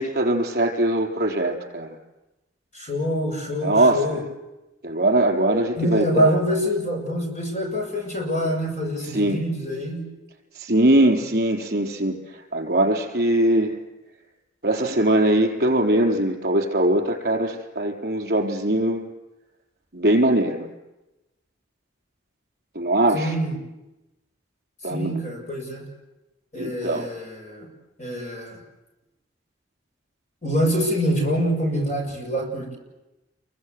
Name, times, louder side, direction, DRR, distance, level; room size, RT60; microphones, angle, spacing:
voice 1, 0.0-1.9 3.6-4.2 4.8-6.4 9.1-9.4 10.6-12.2 12.5-13.8 14.6-19.0 19.9-20.7 22.7-23.3 24.8-25.2 26.6-27.1, right 1 dB, 55° right, 1 dB, 4.4 m, -21 dB
voice 2, 2.7-4.2 5.8-10.0 23.1-23.6 24.9-25.9 26.5-27.7 28.0-28.6 30.4-32.8, equal, 40° left, 2 dB, 7.3 m, -25 dB
29.0 x 23.5 x 8.1 m, 1.0 s
head